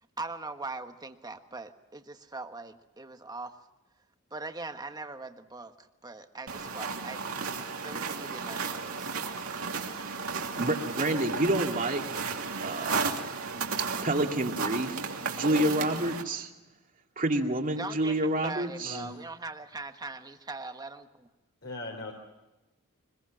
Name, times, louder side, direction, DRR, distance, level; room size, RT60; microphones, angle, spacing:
voice 1, 0.2-3.6 4.3-9.2 17.8-21.3, right 3 dB, 15° right, 7 dB, 1.3 m, -41 dB
sound 1, 6.5-16.2, right 5 dB, 70° right, 2.8 m, -34 dB
voice 2, 10.3-12.0 12.6-13.1 14.0-15.0 15.2-16.5 17.2-19.0, right 1 dB, 40° right, 3 dB, 2.4 m, -28 dB
voice 3, 18.8-19.2 21.6-22.1, left 2 dB, 55° left, 1 dB, 3.7 m, -39 dB
24.5 x 21.5 x 6.2 m, 1.1 s
head